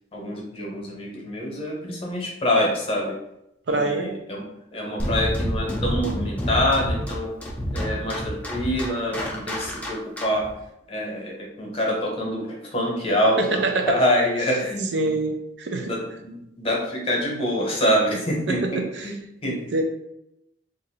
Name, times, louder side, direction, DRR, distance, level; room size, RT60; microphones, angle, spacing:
voice 1, 0.1-3.2 3.7-7.3 7.7-10.4 10.9-15.1 15.8-19.6, equal, 30° left, -2 dB, 0.9 m, -26 dB
voice 2, 3.7-4.1 13.4-14.0 14.9-15.9 18.5-19.1 19.4-19.8, right 3 dB, 65° right, 4 dB, 0.5 m, -25 dB
sound 1, 5.0-10.5, equal, 10° left, 0.5 m, -28 dB
2.5 x 2.5 x 4.1 m, 0.85 s
head